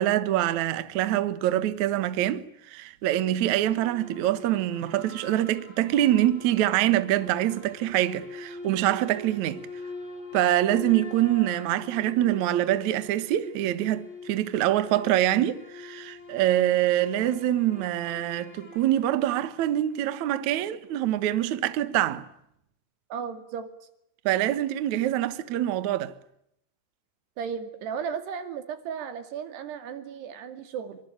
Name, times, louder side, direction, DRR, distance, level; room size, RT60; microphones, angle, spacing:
voice 1, 0.0-9.7 10.3-22.3 24.2-26.2, right 13 dB, 90° right, 1.6 m, -25 dB
sound 1, 3.6-20.2, left 2 dB, 10° left, 3.6 m, -43 dB
voice 2, 23.1-23.7 27.4-31.0, right 7 dB, 60° right, 4.2 m, -35 dB
25.5 x 24.5 x 8.8 m
omnidirectional pair, 5.6 m